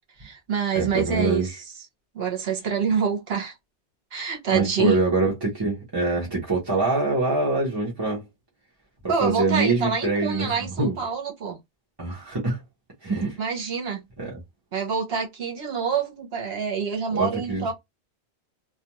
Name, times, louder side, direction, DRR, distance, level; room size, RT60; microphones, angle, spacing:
voice 1, 0.2-1.5 2.1-3.5 4.1-5.0 9.1-11.6 13.4-14.0 14.7-17.7, right 6 dB, 60° right, 1.1 m, -26 dB
voice 2, 0.7-1.6 4.5-8.2 9.2-11.0 12.0-12.6 13.0-13.4 14.2-14.3 17.1-17.6, right 3 dB, 25° right, 0.8 m, -24 dB
2.4 x 2.2 x 2.8 m
omnidirectional pair, 1.2 m